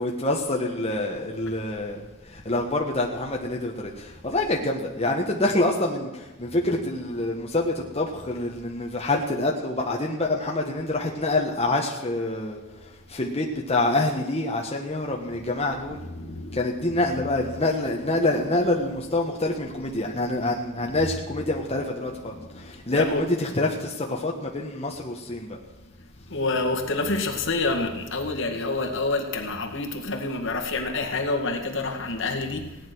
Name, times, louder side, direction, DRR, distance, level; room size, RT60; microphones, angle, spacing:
voice 1, 0.0-16.0 16.5-25.6, left 2 dB, 30° left, -1 dB, 1.4 m, -26 dB
voice 2, 15.9-17.3 18.5-18.7 19.8-19.9 20.8-21.4 22.0-23.3 26.3-32.7, left 3 dB, 65° left, 2 dB, 2.1 m, -29 dB
17.5 x 10.0 x 6.2 m, 1.1 s
head